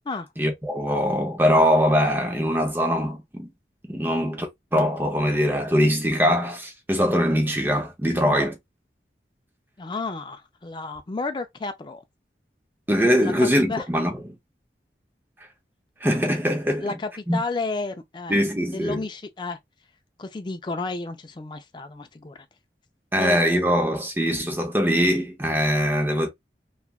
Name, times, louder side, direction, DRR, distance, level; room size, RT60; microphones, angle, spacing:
voice 1, 0.4-3.5 3.9-8.6 12.9-14.4 16.0-16.9 17.3-17.4 18.3-19.1 23.1-26.3, equal, 10° right, 0.7 m, -22 dB
voice 2, 9.8-12.0 13.2-13.3 13.7-13.8 16.8-18.4 18.7-19.6 20.2-22.5 23.2-23.7, left 3 dB, 25° left, 0.3 m, -32 dB
3.2 x 2.3 x 2.3 m
head